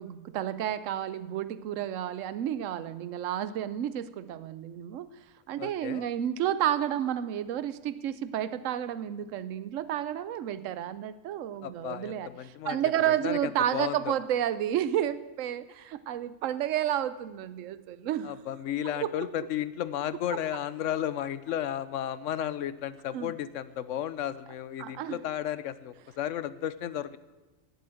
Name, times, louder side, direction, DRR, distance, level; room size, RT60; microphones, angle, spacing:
voice 1, 0.0-5.1 5.5-18.4 18.8-19.3 23.1-23.3 24.8-25.2, right 11 dB, 85° right, 15 dB, 1.0 m, -31 dB
voice 2, 5.6-6.0 11.6-12.8 13.1-14.2 18.2-27.2, left 10 dB, 80° left, 16 dB, 1.0 m, -33 dB
17.0 x 8.1 x 7.6 m, 1.2 s
omnidirectional pair, 1.3 m